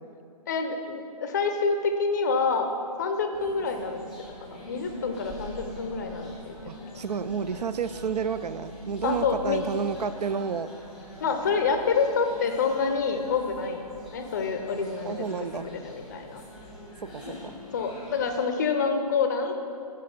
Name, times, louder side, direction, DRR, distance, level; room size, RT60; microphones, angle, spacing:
voice 1, 0.5-2.7 3.0-4.0 4.4-6.5 6.9-7.0 9.0-9.6 11.2-13.9 14.1-16.4 17.3-17.4 17.7-19.5, left 5 dB, 30° left, 6 dB, 0.5 m, -27 dB
sound 1, 3.3-18.5, equal, 5° right, 0.9 m, -45 dB
voice 2, 6.7-10.7 15.0-15.7 17.0-17.5, right 6 dB, 75° right, 13 dB, 0.4 m, -31 dB
6.3 x 5.2 x 5.5 m, 2.6 s
figure-of-eight pair, 145°, 20 cm